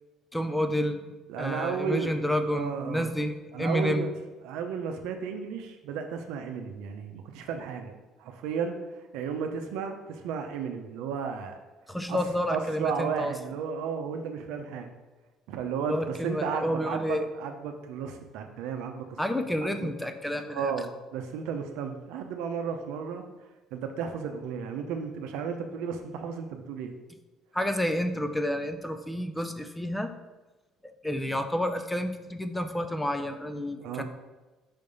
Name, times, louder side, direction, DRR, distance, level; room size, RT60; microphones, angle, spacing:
voice 1, 0.3-4.1 11.9-13.3 15.9-17.3 19.2-20.7 27.5-30.1 30.8-34.0, left 1 dB, 5° left, 8 dB, 0.4 m, -30 dB
voice 2, 1.3-2.1 2.5-3.1 3.5-4.1 4.4-7.9 8.2-8.7 9.1-11.6 12.1-12.2 12.5-14.9 15.5-19.2 19.6-19.9 20.5-23.2 23.7-26.9 33.8-34.0, right 6 dB, 85° right, 6 dB, 0.7 m, -33 dB
5.7 x 3.5 x 5.3 m, 1.2 s
cardioid pair, 125°, 0 cm